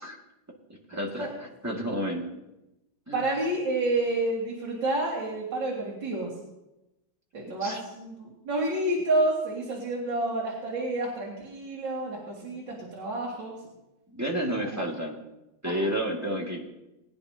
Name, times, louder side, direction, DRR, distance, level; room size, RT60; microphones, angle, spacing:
voice 1, 0.9-1.3 1.6-2.2 3.1-3.2 7.6-7.8 14.1-15.2 15.6-16.7, equal, 10° right, -2 dB, 2.0 m, -30 dB
voice 2, 3.1-6.3 7.3-13.5 14.7-14.8 15.6-15.7, right 2 dB, 80° right, -5 dB, 2.9 m, -29 dB
21.0 x 10.0 x 2.9 m, 0.94 s
omnidirectional pair, 2.0 m